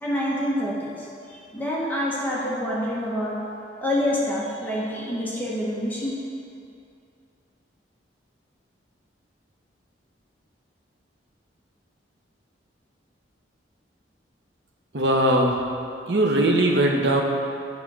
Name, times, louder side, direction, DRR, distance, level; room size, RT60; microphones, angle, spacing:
voice 1, 0.0-3.4 3.8-6.2, equal, 10° left, -6 dB, 1.0 m, -27 dB
voice 2, 14.9-15.6 16.1-17.2, right 1 dB, 65° right, 1 dB, 0.9 m, -20 dB
9.3 x 3.7 x 6.0 m, 2.6 s
head